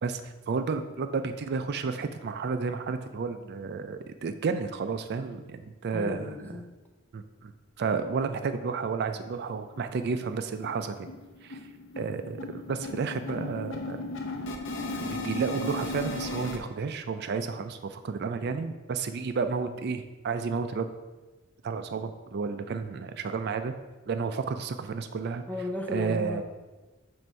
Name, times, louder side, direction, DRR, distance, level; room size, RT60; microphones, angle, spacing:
voice 1, 0.0-6.5 7.1-7.5 7.8-11.1 11.4-11.6 12.0-14.0 14.9-20.9 21.6-23.7 24.1-25.4 25.9-26.4, right 5 dB, 55° right, 9 dB, 0.4 m, -31 dB
voice 2, 5.9-6.7 25.5-26.4, left 2 dB, 10° left, 1 dB, 0.7 m, -35 dB
sound 1, 9.3-9.4 9.7-9.8 10.2-10.4 10.6-16.6, left 2 dB, 65° left, 0.8 m, -36 dB
7.6 x 2.6 x 5.5 m, 1.2 s
head